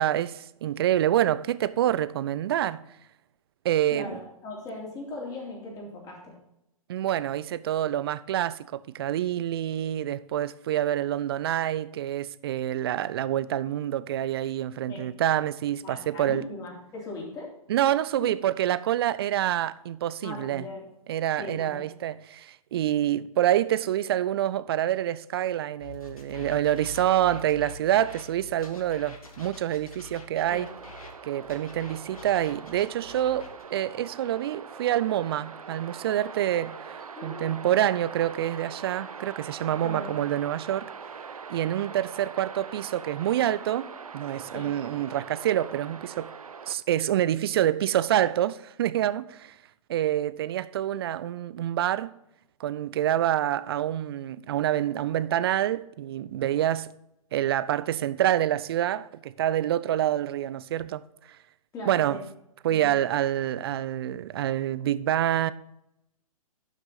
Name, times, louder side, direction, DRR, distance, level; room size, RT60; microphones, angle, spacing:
voice 1, 0.0-2.8 3.6-4.2 6.9-16.4 17.7-20.7 21.1-30.7 31.2-40.9 41.5-46.3 46.7-49.5 49.9-52.1 52.6-56.9 57.3-61.4 61.8-62.2 62.6-65.5, right 12 dB, 40° right, 0.5 m, -27 dB
voice 2, 3.9-6.3 14.9-15.0 15.8-17.5 18.2-18.3 20.2-20.8 21.4-21.9 30.5-30.7 37.1-37.5 39.8-40.1 44.5-44.7 61.7-62.2 62.7-62.9, left 2 dB, 20° left, 3.4 m, -39 dB
sound 1, 25.8-31.1 31.4-33.6, left 3 dB, 70° left, 2.1 m, -45 dB
sound 2, 30.5-46.7, right 6 dB, 70° right, 0.7 m, -42 dB
11.5 x 6.1 x 4.0 m
figure-of-eight pair, 120°, 19 cm